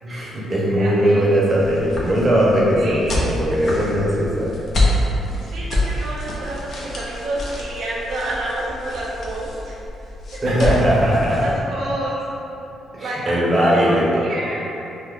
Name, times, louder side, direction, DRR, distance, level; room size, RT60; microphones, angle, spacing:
voice 1, 0.0-4.5 10.4-11.5 12.9-14.3, equal, 25° right, -6 dB, 0.7 m, -19 dB
voice 2, 0.7-1.3 2.8-3.5 5.3-9.8 10.4-10.7 11.4-12.2 13.0-13.4 13.6-14.6, right 1 dB, 70° right, -5 dB, 0.4 m, -29 dB
sound 1, 1.6-11.6, left 1 dB, 55° left, 0.6 m, -26 dB
2.7 x 2.3 x 3.6 m, 2.9 s
cardioid pair, 90°, 0 cm